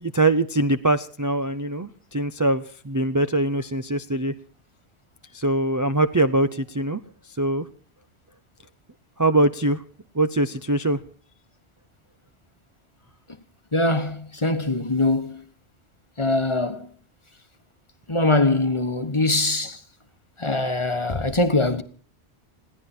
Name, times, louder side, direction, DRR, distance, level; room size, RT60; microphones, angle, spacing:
voice 1, 0.0-4.3 5.3-7.0 7.4-7.6 9.2-9.8 10.1-11.0, right 2 dB, 20° right, 0.6 m, -22 dB
voice 2, 13.7-15.4 16.2-16.8 18.1-19.8 20.4-21.8, left 2 dB, 30° left, 1.3 m, -22 dB
21.0 x 16.0 x 4.4 m
omnidirectional pair, 1.1 m